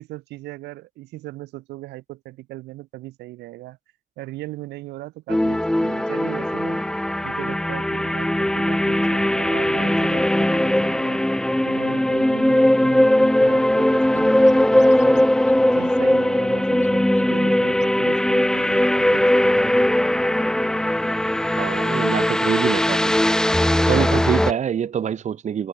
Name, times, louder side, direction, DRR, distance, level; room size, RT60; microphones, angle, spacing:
voice 1, 0.0-3.8 4.2-11.2 11.7-15.3 15.7-20.0, right 18 dB, 80° right, 2.4 m, -38 dB
sound 1, 5.3-24.5, left 1 dB, 5° left, 0.9 m, -19 dB
Scratching (performance technique), 14.2-14.3 14.5-15.2 15.5-15.6 15.8-16.9 17.2-17.6 17.8-17.9 18.2-18.3 18.5-19.0, left 8 dB, 45° left, 4.9 m, -50 dB
voice 2, 21.6-23.2 23.9-25.7, right 8 dB, 45° right, 2.5 m, -25 dB
open air
cardioid pair, 110°, 17 cm